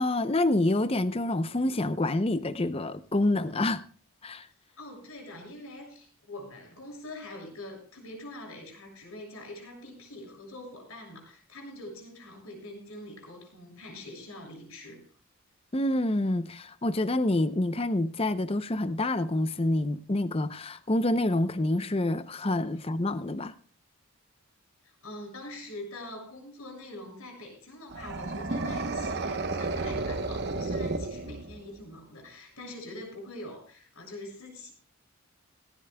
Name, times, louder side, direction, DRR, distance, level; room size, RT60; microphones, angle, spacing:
voice 1, 0.0-3.8 4.2-4.5 15.7-23.5, left 1 dB, 25° left, 0.6 m, -27 dB
voice 2, 4.8-15.0 22.7-22.9 24.8-34.7, left 1 dB, 70° left, 7.0 m, -44 dB
sound 1, 27.9-31.8, right 3 dB, 50° right, 1.0 m, -32 dB
18.0 x 17.5 x 2.3 m
head